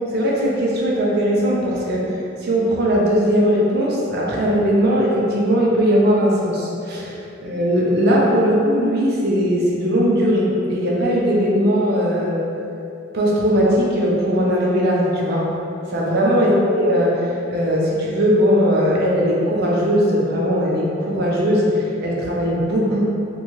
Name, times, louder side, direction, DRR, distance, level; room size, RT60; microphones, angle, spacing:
voice 1, 0.0-2.2 2.4-12.4 13.1-15.5 15.9-23.0, equal, 55° right, -4 dB, 0.5 m, -19 dB
2.7 x 2.2 x 3.0 m, 2.7 s
head